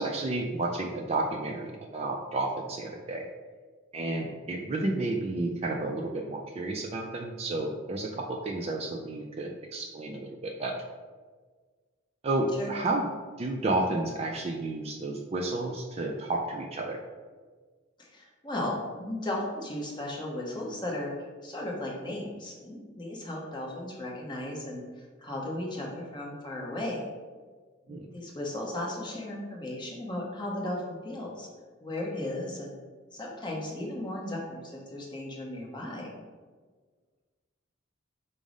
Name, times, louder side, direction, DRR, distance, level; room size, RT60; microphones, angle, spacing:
voice 1, 0.0-3.3 3.9-10.8 12.2-13.1 13.4-17.0 27.9-28.1, right 2 dB, 30° right, 1 dB, 0.3 m, -31 dB
voice 2, 18.0-21.1 21.4-27.0 27.9-31.5 31.8-32.8 33.1-36.1, left 1 dB, 20° left, -2 dB, 0.8 m, -36 dB
5.4 x 2.0 x 4.9 m, 1.4 s
head